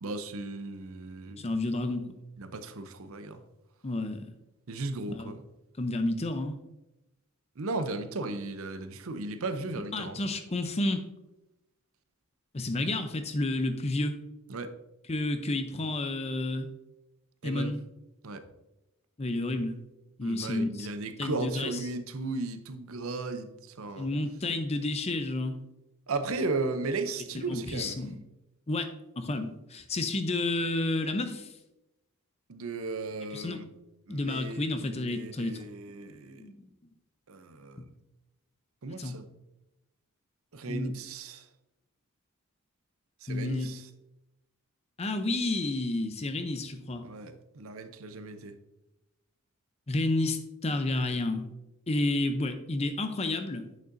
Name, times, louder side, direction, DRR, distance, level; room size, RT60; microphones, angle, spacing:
voice 1, 0.0-1.5 2.4-3.4 4.7-5.4 7.6-10.2 14.5-14.7 17.4-17.7 18.2-18.4 20.2-24.1 26.1-28.0 32.5-33.7 34.1-36.5 37.3-37.8 38.8-39.3 40.5-41.5 43.2-43.9 47.0-48.6, right 3 dB, 65° right, 0.6 m, -36 dB
voice 2, 1.4-2.1 3.8-4.2 5.1-5.4 5.8-6.6 9.7-11.0 12.5-14.2 15.1-16.7 17.4-17.8 19.2-19.8 20.2-20.9 21.2-21.8 24.0-25.6 27.5-28.1 28.7-28.9 29.2-31.5 33.3-33.6 34.1-35.6 36.4-36.7 39.0-39.2 40.7-40.9 43.3-43.7 45.0-47.1 49.9-51.5 51.9-53.7, left 2 dB, 30° left, 0.6 m, -30 dB
8.5 x 6.5 x 2.6 m
head